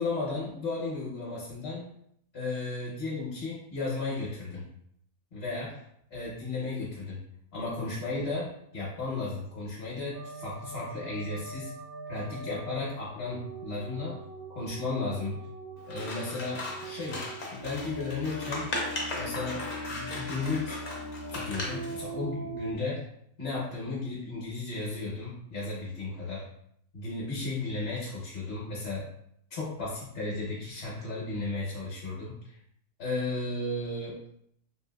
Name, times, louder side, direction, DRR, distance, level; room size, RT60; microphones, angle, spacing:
voice 1, 0.0-1.9 2.3-4.7 5.3-5.8 6.1-7.2 7.5-11.7 12.1-14.2 14.5-15.4 15.9-17.2 17.5-18.7 19.2-20.8 21.3-23.1 23.4-26.5 26.9-29.1 29.5-32.6 33.0-34.2, left 3 dB, 45° left, -6 dB, 1.0 m, -34 dB
sound 1, 10.1-22.7, right 2 dB, 85° right, 1.1 m, -41 dB
Scissors, 15.9-22.0, left 2 dB, 80° left, 0.3 m, -37 dB
3.2 x 2.6 x 2.3 m, 0.70 s
omnidirectional pair, 1.5 m